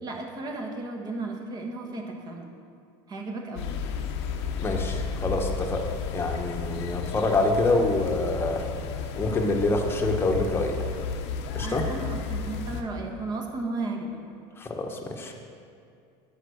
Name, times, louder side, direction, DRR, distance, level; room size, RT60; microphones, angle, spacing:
voice 1, 0.0-2.5 3.1-3.7 11.6-14.2, right 2 dB, 30° right, 2 dB, 1.3 m, -34 dB
sound 1, 3.6-12.8, left 5 dB, 85° left, 0.8 m, -32 dB
voice 2, 4.6-5.8 6.1-8.6 9.2-10.8 11.5-11.8 14.6-15.3, left 2 dB, 15° left, 2 dB, 1.1 m, -26 dB
10.0 x 5.8 x 6.4 m, 2.4 s
supercardioid pair, 135°, 14 cm